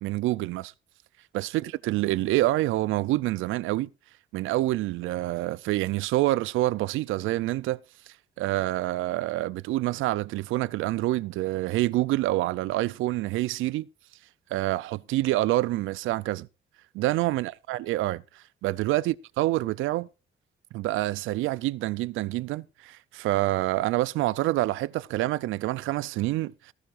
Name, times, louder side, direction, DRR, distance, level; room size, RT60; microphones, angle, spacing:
voice 1, 0.0-0.7 1.3-3.9 4.3-7.8 8.1-13.9 14.5-16.5 16.9-20.1 20.7-26.7, right 17 dB, 90° right, 0.5 m, -27 dB
15.0 x 14.0 x 2.5 m
cardioid pair, 90°, 20 cm